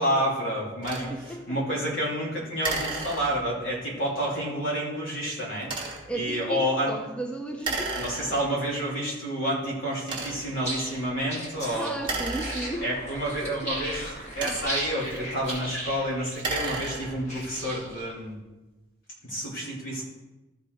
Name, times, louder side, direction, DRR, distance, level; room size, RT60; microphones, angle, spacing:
voice 1, 0.0-5.7 6.1-7.0 8.0-12.0 12.8-18.4 19.2-20.0, equal, 80° left, -5 dB, 3.5 m, -29 dB
sound 1, 0.8-1.1 2.6-3.6 5.6-6.2 7.6-8.6 9.3-9.4 10.0-10.6 12.0-13.1 14.1-15.0 16.3-17.3, right 3 dB, 25° right, 1.4 m, -33 dB
voice 2, 6.1-8.0 11.7-12.9 13.4-13.5, right 1 dB, 5° left, 3 dB, 0.6 m, -34 dB
sound 2, 10.5-18.1, right 1 dB, 35° left, 2.1 m, -37 dB
13.5 x 4.9 x 4.9 m, 1.1 s
head